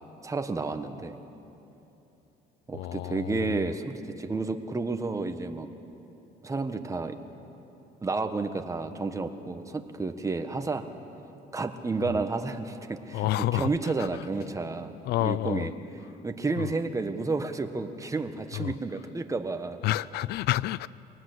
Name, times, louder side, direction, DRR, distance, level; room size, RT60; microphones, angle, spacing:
voice 1, 0.2-1.2 2.7-5.7 6.4-7.2 8.0-10.9 11.5-14.9 15.2-15.7 16.2-19.8, right 3 dB, 20° right, 1.4 m, -31 dB
voice 2, 2.7-3.7 12.0-12.1 13.1-14.3 15.0-15.7 16.6-16.7 18.5-18.7 19.8-20.9, left 15 dB, 75° left, 0.5 m, -29 dB
23.5 x 19.0 x 8.0 m
cardioid pair, 110°, 17 cm